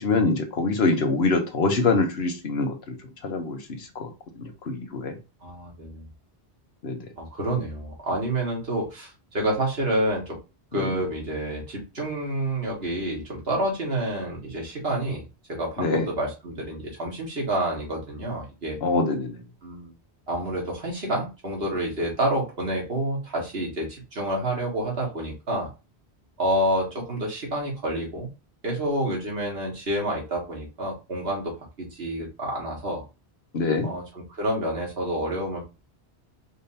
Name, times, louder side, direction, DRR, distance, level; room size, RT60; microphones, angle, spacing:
voice 1, 0.0-2.8 3.2-4.1 4.4-5.2 6.8-7.0 10.7-10.9 15.8-16.1 18.8-19.4 33.5-33.9, left 3 dB, 70° left, 1.2 m, -24 dB
voice 2, 5.4-6.1 7.2-10.4 10.7-15.2 15.5-18.8 19.6-19.9 20.3-25.7 26.4-28.3 28.6-33.0 33.8-35.6, right 1 dB, 65° right, 2.1 m, -28 dB
5.1 x 3.5 x 2.8 m
omnidirectional pair, 1.1 m